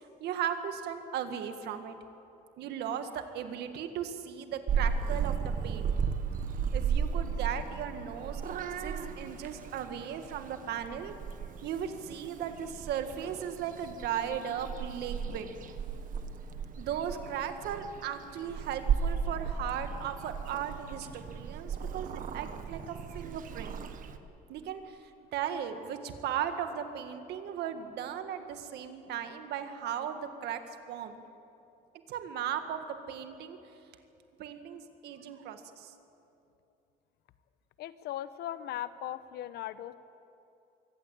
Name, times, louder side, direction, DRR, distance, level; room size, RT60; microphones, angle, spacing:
voice 1, 0.2-1.9 2.6-5.4 5.6-5.9 6.7-8.4 8.8-11.1 11.6-15.5 16.8-23.7 24.5-24.8 25.3-30.6 30.9-31.2 32.1-33.6 34.4-35.9, right 9 dB, 75° right, 8 dB, 1.8 m, -37 dB
Purr / Meow, 4.7-24.2, right 6 dB, 55° right, 1.4 m, -35 dB
voice 2, 37.8-39.9, left 12 dB, 75° left, 14 dB, 0.9 m, -38 dB
23.5 x 15.5 x 8.7 m, 2.8 s
cardioid pair, 110°, 17 cm